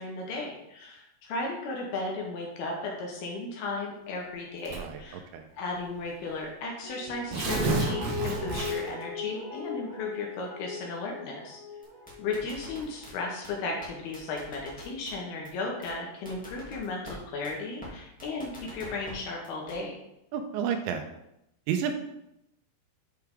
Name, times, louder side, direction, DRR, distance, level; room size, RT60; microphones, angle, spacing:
voice 1, 0.0-5.2 5.6-11.6 12.2-20.0, left 3 dB, 70° left, -1 dB, 2.6 m, -35 dB
Tearing, 4.7-5.1 5.9-6.0 6.3-6.4 7.1-9.0, right 3 dB, 70° right, 2.9 m, -30 dB
Guitar, 6.8-13.8 14.2-14.3, left 4 dB, 90° left, 0.5 m, -39 dB
sound 1, 11.8-13.1 13.4-13.5 13.8-13.9 14.1-15.1 15.4-15.5 15.8-15.9 16.2-17.1 17.4-17.5 17.8-17.9 18.2-19.1 19.4-19.7, right 1 dB, 10° left, 0.5 m, -45 dB
voice 2, 20.3-21.0 21.7-21.9, right 8 dB, 85° right, 6 dB, 2.9 m, -30 dB
10.0 x 4.6 x 3.6 m, 0.84 s
omnidirectional pair, 5.3 m